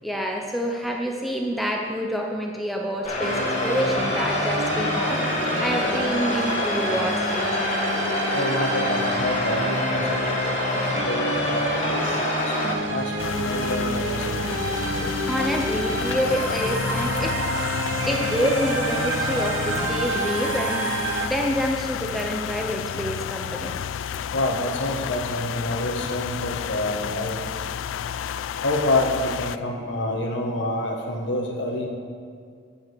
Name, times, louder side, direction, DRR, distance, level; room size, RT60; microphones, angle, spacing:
voice 1, 0.0-5.2 5.6-7.5 15.3-17.4 18.1-20.9 21.2-23.7, equal, ahead, 0 dB, 0.6 m, -27 dB
sound 1, 3.0-12.7, left 2 dB, 35° left, 1.4 m, -26 dB
sound 2, 3.2-21.3, right 2 dB, 80° right, 1.1 m, -28 dB
voice 2, 8.3-10.2 11.1-12.1 12.9-13.1 13.4-14.4 24.3-27.4 28.6-31.9, left 1 dB, 65° left, 1 dB, 1.1 m, -27 dB
sound 3, 13.2-29.6, left 8 dB, 90° left, 0.3 m, -31 dB
8.4 x 7.9 x 6.2 m, 2.2 s
head